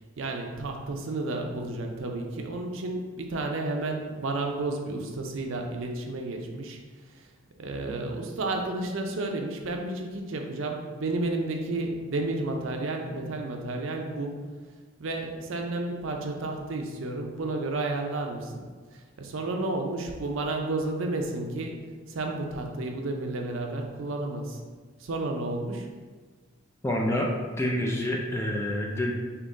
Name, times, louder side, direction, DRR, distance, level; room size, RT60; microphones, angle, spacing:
voice 1, 0.2-6.8 7.6-14.4 15.0-18.6 18.9-21.8 22.1-24.6 25.0-25.9, right 2 dB, 70° right, 3 dB, 0.5 m, -31 dB
voice 2, 26.8-27.3 27.6-29.1, left 1 dB, 10° left, 0 dB, 0.3 m, -27 dB
3.6 x 2.9 x 3.8 m, 1.4 s
head